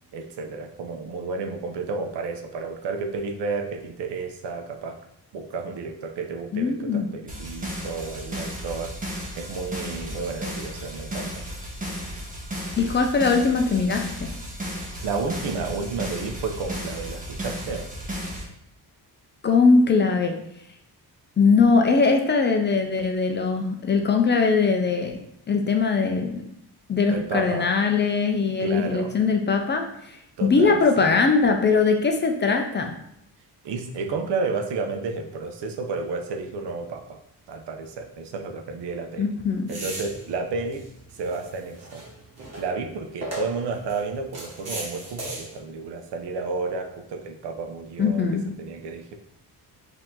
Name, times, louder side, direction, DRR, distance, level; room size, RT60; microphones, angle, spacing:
voice 1, 0.1-5.0 5.3-9.0 9.4-11.4 14.7-17.9 27.1-27.7 28.6-29.2 30.4-31.1 33.6-37.2 37.5-39.3 39.7-40.9 41.2-42.1 42.6-49.1, right 4 dB, 85° right, 5 dB, 0.7 m, -31 dB
voice 2, 6.5-7.1 12.8-14.3 19.4-20.4 21.4-25.2 25.5-26.3 26.9-30.2 30.4-32.9 39.2-39.7 48.0-48.4, left 4 dB, 30° left, 4 dB, 0.4 m, -21 dB
sound 1, 7.3-18.4, equal, 20° right, 1.0 m, -34 dB
sound 2, 39.7-45.6, right 1 dB, 40° right, 1.3 m, -38 dB
4.6 x 2.8 x 3.7 m, 0.77 s
wide cardioid pair, 160°, 40 cm